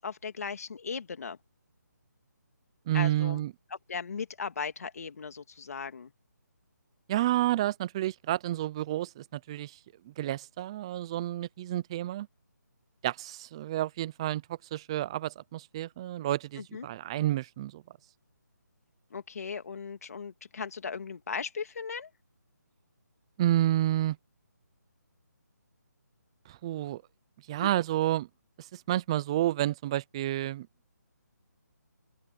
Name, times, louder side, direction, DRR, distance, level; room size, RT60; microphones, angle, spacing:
voice 1, 0.0-1.4 2.9-3.4 3.9-6.1 16.6-16.9 19.1-22.1 27.6-27.7, left 5 dB, 55° left, 2.2 m, -37 dB
voice 2, 2.9-3.5 7.1-9.8 10.1-12.3 13.0-17.8 23.4-24.2 26.5-27.0 27.5-28.3 28.7-30.7, right 14 dB, 15° right, 0.6 m, -30 dB
open air
hypercardioid pair, 165°, 10 cm